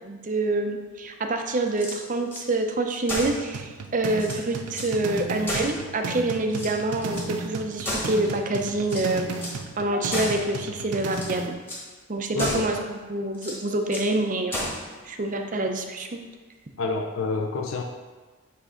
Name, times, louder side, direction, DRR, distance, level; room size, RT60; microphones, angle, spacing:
voice 1, 0.0-9.3 9.8-11.5 12.1-14.6 15.0-16.2, right 2 dB, 35° right, 5 dB, 0.5 m, -26 dB
sound 1, 1.7-2.5 3.0-3.4 3.8-3.9 4.1-4.9 5.4-6.2 6.5-7.3 7.8-8.4 8.8-9.6 10.1-10.5 11.0-11.4 11.7-11.9 12.4-12.8 13.3-14.1 14.5-14.9, left 1 dB, 10° left, 1.4 m, -33 dB
sound 2, 3.5-11.5, right 4 dB, 85° right, 0.5 m, -35 dB
voice 2, 12.3-12.7 16.8-17.8, left 3 dB, 60° left, 2 dB, 0.5 m, -28 dB
7.4 x 3.3 x 4.9 m, 1.3 s
head